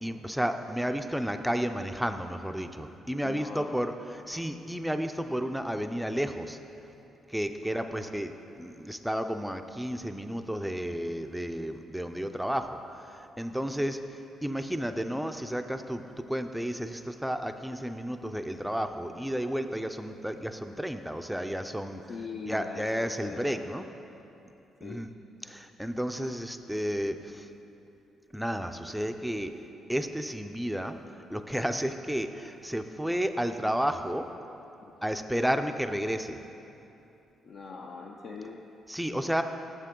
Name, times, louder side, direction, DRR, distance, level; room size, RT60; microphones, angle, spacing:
voice 1, 0.0-6.6 7.3-22.0 22.5-23.8 24.8-25.1 25.4-27.5 28.3-29.5 29.9-30.9 31.3-34.3 35.0-36.4 38.9-39.4, equal, ahead, 7 dB, 0.4 m, -32 dB
voice 2, 3.2-3.8 7.6-8.0 22.1-23.7 24.8-25.0 34.8-34.9 37.4-38.7, left 4 dB, 60° left, 1 dB, 0.5 m, -42 dB
9.1 x 7.4 x 3.7 m, 2.9 s
cardioid pair, 95°, 0 cm